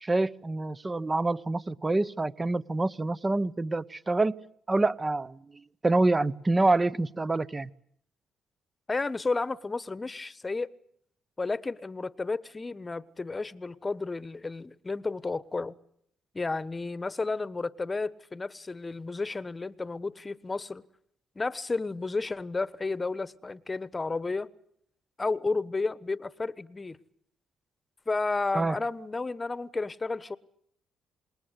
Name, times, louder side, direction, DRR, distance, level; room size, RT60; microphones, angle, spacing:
voice 1, 0.0-4.4 4.7-5.4 5.8-7.7 28.5-28.8, right 2 dB, 20° right, 1.0 m, -26 dB
voice 2, 8.9-10.7 11.4-15.7 16.3-20.8 21.3-24.5 25.2-27.0 28.1-30.4, left 3 dB, 25° left, 1.2 m, -32 dB
27.5 x 21.0 x 8.2 m
cardioid pair, 90°, 0 cm